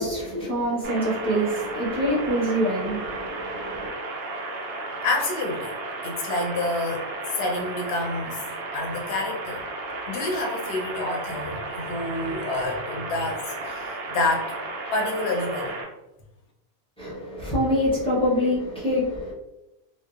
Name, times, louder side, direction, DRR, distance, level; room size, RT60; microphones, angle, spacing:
voice 1, 0.0-3.9 17.0-19.3, equal, 5° left, 0.6 m, -25 dB
sound 1, 0.8-15.8, right 2 dB, 65° right, 0.7 m, -34 dB
voice 2, 5.0-5.7 6.0-7.1 7.3-8.5 8.7-9.6 10.1-14.5 14.9-15.8, left 2 dB, 65° left, 0.8 m, -28 dB
2.7 x 2.1 x 2.3 m
omnidirectional pair, 1.2 m